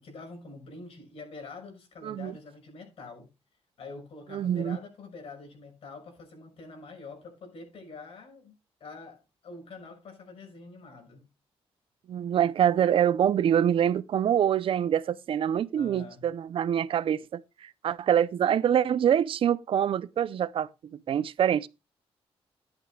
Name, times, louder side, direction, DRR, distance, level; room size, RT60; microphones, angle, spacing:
voice 1, 0.0-3.3 3.8-8.5 8.8-11.3 15.8-16.3, left 3 dB, 65° left, 6.1 m, -45 dB
voice 2, 4.3-4.8 12.1-21.7, right 9 dB, 60° right, 0.6 m, -25 dB
13.0 x 10.5 x 2.3 m
wide cardioid pair, 145°, 10 cm